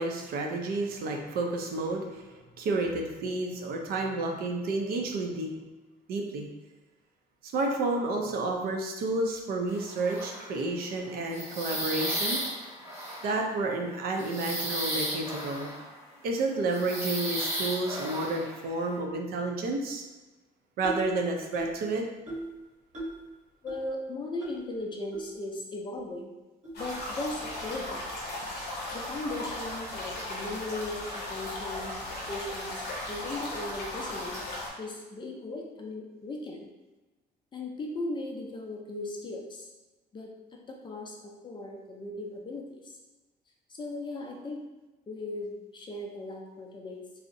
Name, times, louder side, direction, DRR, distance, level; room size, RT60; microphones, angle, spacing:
voice 1, 0.0-2.3 2.6-5.5 6.1-6.5 7.4-12.4 13.2-15.7 16.2-20.0 20.8-22.0, right 2 dB, 65° right, 2 dB, 0.5 m, -30 dB
sound 1, 9.7-10.7 11.0-16.1 16.7-19.0, equal, 15° right, 1.0 m, -35 dB
sound 2, 20.8-21.1 21.5-21.8 22.3-22.5 22.9-23.2 23.7-23.8 24.4-24.5 25.1-25.2 25.9-26.0 26.6-26.8, right 1 dB, 45° right, 0.8 m, -37 dB
voice 2, 23.6-26.3 26.8-28.0 28.9-32.0 32.3-34.4 34.8-36.7 37.5-39.7 40.1-40.3 40.7-43.0 43.7-44.6 45.1-47.1, left 2 dB, 30° left, 0 dB, 0.4 m, -37 dB
sound 3, 26.7-34.7, left 1 dB, 70° left, 0.8 m, -37 dB
2.6 x 2.0 x 2.5 m, 1.2 s
cardioid pair, 110°, 17 cm